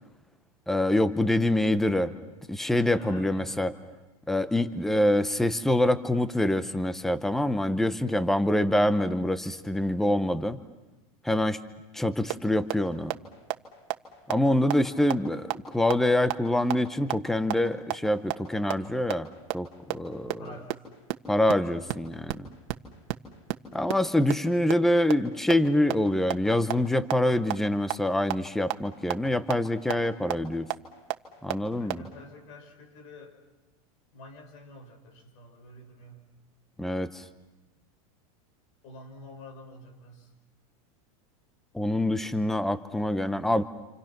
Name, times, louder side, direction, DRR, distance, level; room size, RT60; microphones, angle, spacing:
voice 1, 0.7-2.1 2.5-3.7 4.3-10.6 11.2-11.6 11.9-13.1 14.3-19.3 19.5-20.5 21.3-22.5 23.7-30.7 31.4-32.0 36.8-37.2 41.7-43.6, left 1 dB, ahead, 12 dB, 0.8 m, -25 dB
voice 2, 2.9-3.7 14.9-15.2 20.2-20.8 31.7-33.4 34.1-36.2 38.8-40.3, left 1 dB, 60° left, 5 dB, 5.8 m, -48 dB
sound 1, 12.3-12.4 12.7-12.8 13.1-13.2 13.5-13.6 13.9-14.0 14.3-14.4 14.7-14.8 15.1-15.2 15.5-15.6 15.9-16.0 16.3-16.4 16.7-16.8 17.1-17.2 17.5-17.6 17.9-18.0 18.3-18.4 18.7-18.8 19.1-19.2 19.5-19.6 19.9-20.0 20.3-20.4 20.7-20.8 21.1-21.2 21.5-21.6 21.9-22.0 22.3-22.4 22.7-22.8 23.1-23.2 23.5-23.6 23.9-24.0 24.3-24.4 24.7-24.8 25.1-25.2 25.5-25.6 25.9-26.0 26.3-26.4 26.7-26.8 27.1-27.2 27.5-27.6 27.9-28.0 28.3-28.4 28.7-28.8 29.1-29.2 29.5-29.6 29.9-30.0 30.3-30.4 30.7-30.8 31.1-31.2 31.5-31.6 31.9-32.0, right 21 dB, 50° right, 1.5 m, -26 dB
28.5 x 28.0 x 6.0 m, 1.1 s
supercardioid pair, 145°, 19 cm